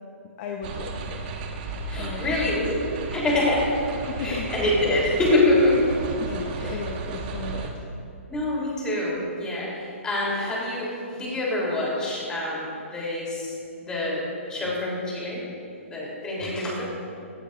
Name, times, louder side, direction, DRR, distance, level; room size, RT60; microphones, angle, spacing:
voice 1, 0.4-1.2 1.9-2.6 3.3-3.4 4.1-4.5 6.2-7.7 16.5-16.8, left 5 dB, 35° left, 2 dB, 0.9 m, -35 dB
sound 1, 0.6-7.7, right 4 dB, 40° right, 1.4 m, -34 dB
voice 2, 1.9-2.8 3.1-3.6 4.2-5.8 6.6-6.8 8.3-13.5 13.8-14.2 14.5-15.4 15.9-16.8, left 2 dB, 10° left, -5 dB, 3.3 m, -25 dB
18.0 x 14.5 x 2.5 m, 2.6 s
hypercardioid pair, 155°, 7 cm